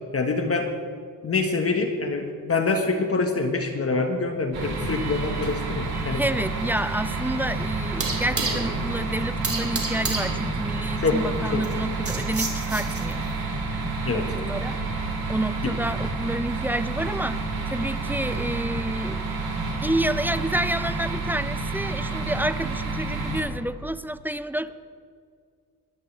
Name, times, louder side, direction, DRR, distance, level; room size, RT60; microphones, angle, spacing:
voice 1, 0.1-0.7 1.2-6.2 11.0-11.2 11.5-11.6 14.0-14.3 15.6-15.7, left 3 dB, 40° left, 4 dB, 1.4 m, -25 dB
sound 1, 4.5-23.4, right 3 dB, 70° right, 4.0 m, -29 dB
sound 2, 5.5-13.4, right 3 dB, 35° right, 2.8 m, -33 dB
voice 2, 6.1-13.3 14.1-14.8 15.3-19.4 19.8-24.7, right 1 dB, 5° right, 14 dB, 0.5 m, -29 dB
22.0 x 13.5 x 3.4 m, 2.2 s
cardioid pair, 95°, 38 cm